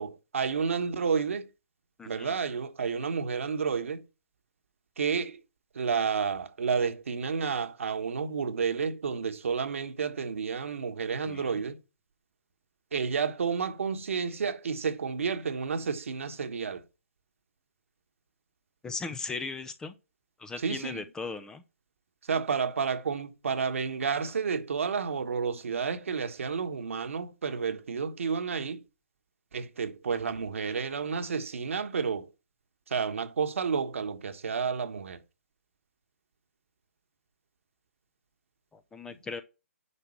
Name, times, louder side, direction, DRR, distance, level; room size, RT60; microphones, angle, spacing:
voice 1, 0.0-1.5 2.0-4.0 5.0-5.4 5.7-11.8 12.9-16.8 20.6-21.0 22.2-28.8 29.5-32.3 32.9-35.2, right 6 dB, 60° right, 1.3 m, -31 dB
voice 2, 2.0-2.3 11.3-11.6 18.8-19.9 20.4-21.6 38.7-39.4, left 4 dB, 10° left, 0.6 m, -38 dB
9.9 x 5.8 x 4.4 m
figure-of-eight pair, 135°, 8 cm